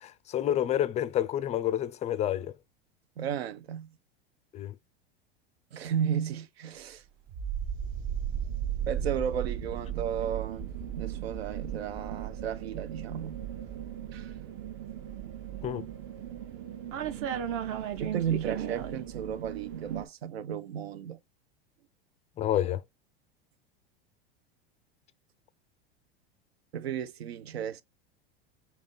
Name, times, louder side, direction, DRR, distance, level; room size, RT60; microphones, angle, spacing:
voice 1, 0.0-2.5 4.5-4.7 15.6-15.9 22.4-22.8, left 11 dB, 25° left, 0.3 m, -29 dB
voice 2, 3.2-4.0 5.7-7.0 8.9-13.4 14.1-14.3 18.0-21.2 26.7-27.8, right 8 dB, 85° right, 0.6 m, -34 dB
sound 1, 7.3-20.1, right 9 dB, 45° right, 0.8 m, -36 dB
3.5 x 2.8 x 3.7 m
hypercardioid pair, 95°, 30 cm